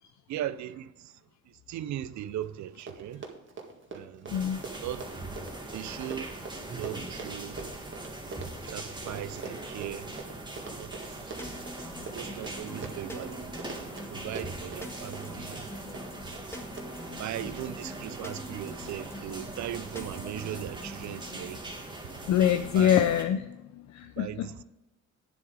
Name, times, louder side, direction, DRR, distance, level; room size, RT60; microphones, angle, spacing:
voice 1, 0.3-1.2 1.5-3.3 3.9-4.3 4.8-5.0 5.7-6.3 6.7-7.6 8.4-10.2 10.7-11.4 12.1-15.7 16.4-16.5 17.2-21.6 22.4-23.0 24.2-24.6, right 12 dB, 65° right, 0.5 m, -38 dB
Run, 2.4-2.5 2.7-17.7 18.3-18.5 18.9-19.0, right 4 dB, 40° right, 1.9 m, -44 dB
voice 2, 4.3-4.6 22.3-24.5, left 10 dB, 65° left, 0.6 m, -25 dB
sound 1, 4.3-23.2, right 2 dB, 15° right, 2.0 m, -41 dB
sound 2, 11.4-21.7, left 1 dB, 10° left, 1.6 m, -45 dB
9.7 x 7.5 x 4.8 m
cardioid pair, 90°, 30 cm